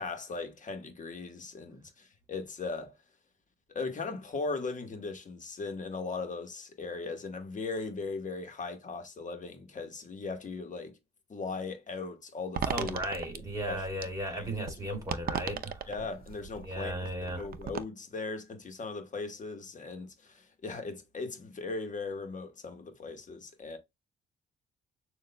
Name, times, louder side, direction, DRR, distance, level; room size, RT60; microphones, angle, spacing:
voice 1, 0.0-3.0 3.7-10.9 11.3-13.0 13.7-13.8 14.3-14.5 14.9-15.0 15.9-23.8, left 3 dB, 40° left, 1.3 m, -38 dB
sound 1, 12.5-17.8, right 7 dB, 50° right, 0.6 m, -38 dB
voice 2, 12.7-15.9 16.6-17.5, right 1 dB, 15° right, 2.7 m, -36 dB
6.4 x 2.5 x 2.2 m
cardioid pair, 90°, 20 cm